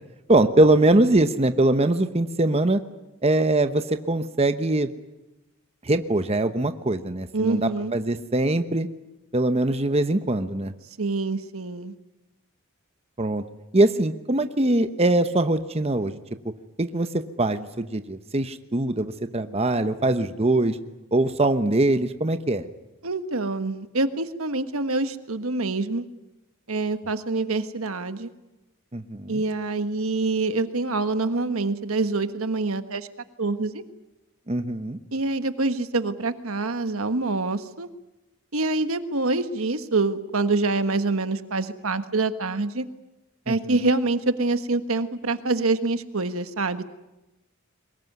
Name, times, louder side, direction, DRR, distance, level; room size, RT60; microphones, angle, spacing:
voice 1, 0.3-2.8 3.2-4.9 5.8-8.9 9.3-10.7 13.2-13.4 13.7-16.2 16.8-20.8 21.1-22.7 28.9-29.4 34.5-35.0 43.5-43.7, right 2 dB, 30° right, 9 dB, 1.0 m, -22 dB
voice 2, 7.3-7.9 11.0-11.9 23.0-26.0 26.7-28.3 29.3-33.1 33.4-33.8 35.1-37.9 38.5-42.8 43.5-46.8, right 3 dB, 85° right, 10 dB, 1.4 m, -26 dB
23.5 x 20.5 x 9.5 m, 1.0 s
head